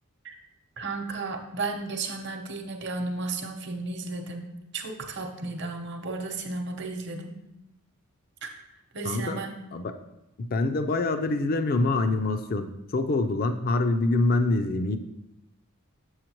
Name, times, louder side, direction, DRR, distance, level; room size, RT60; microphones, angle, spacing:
voice 1, 0.8-7.4 8.4-8.5 8.9-9.6, right 3 dB, 55° right, 4 dB, 0.8 m, -34 dB
voice 2, 9.0-9.4 9.7-9.9 10.4-15.0, left 2 dB, 45° left, 8 dB, 0.4 m, -25 dB
7.5 x 6.5 x 3.0 m, 0.89 s
head